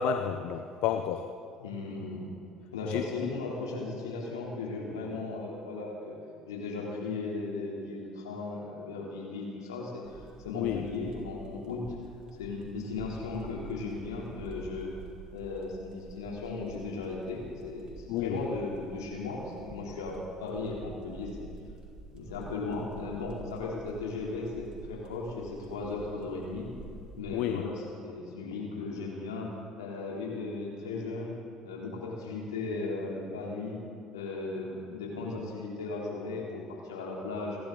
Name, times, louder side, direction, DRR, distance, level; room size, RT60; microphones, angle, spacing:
voice 1, 0.0-1.3 2.9-3.3 10.5-10.9 18.1-18.4 27.3-27.6, left 9 dB, 65° left, 7 dB, 0.7 m, -31 dB
voice 2, 1.6-2.3 2.7-6.2 6.5-11.8 12.4-14.9 15.3-21.5 22.1-26.7 27.1-29.5 29.8-31.3 31.6-33.8 34.1-37.6, left 3 dB, 85° left, -3 dB, 3.1 m, -36 dB
sound 1, 10.0-27.2, right 3 dB, 40° right, 4.0 m, -49 dB
30.0 x 12.0 x 3.9 m, 2.4 s
hypercardioid pair, 60°, 2 cm